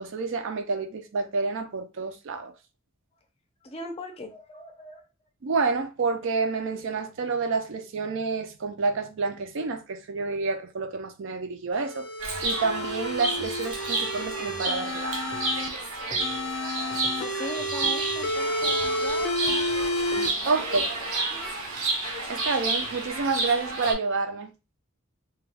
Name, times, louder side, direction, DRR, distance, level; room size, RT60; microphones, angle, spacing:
voice 1, 0.0-2.5 5.4-12.1 12.4-15.4 20.5-20.8 22.3-24.5, right 4 dB, 60° right, 0.4 m, -29 dB
voice 2, 3.6-5.1 17.2-20.0 20.4-20.8 21.3-21.6, left 2 dB, 30° left, 0.5 m, -40 dB
sound 1, 11.8-15.7 16.2-20.3, left 1 dB, 85° left, 0.5 m, -30 dB
Chirp tweet, 12.2-23.9, right 3 dB, 90° right, 0.8 m, -31 dB
sound 2, 15.3-15.8 16.1-16.6 16.9-22.7, left 1 dB, 15° right, 0.7 m, -46 dB
2.3 x 2.2 x 3.2 m
head